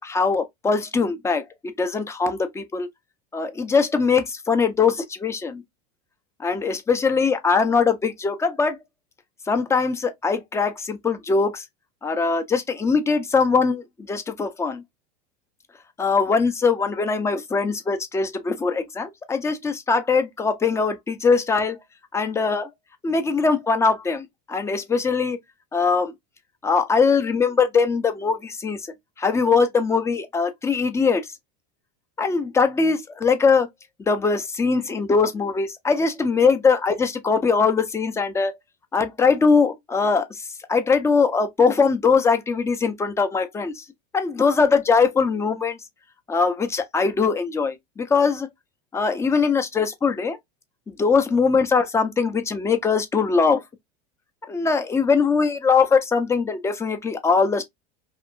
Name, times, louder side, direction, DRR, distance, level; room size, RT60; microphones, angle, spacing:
voice 1, 0.0-2.9 3.3-5.6 6.4-8.8 9.5-11.6 12.0-14.8 16.0-21.8 22.1-22.7 23.0-25.4 25.7-26.1 26.6-28.8 29.2-31.3 32.2-33.7 34.1-38.6 38.9-40.4 40.7-43.8 44.1-45.8 46.3-48.5 48.9-50.4 51.0-53.6 54.5-57.6, left 5 dB, 15° left, 0.4 m, -21 dB
2.6 x 2.5 x 2.5 m
supercardioid pair, 125°, 21 cm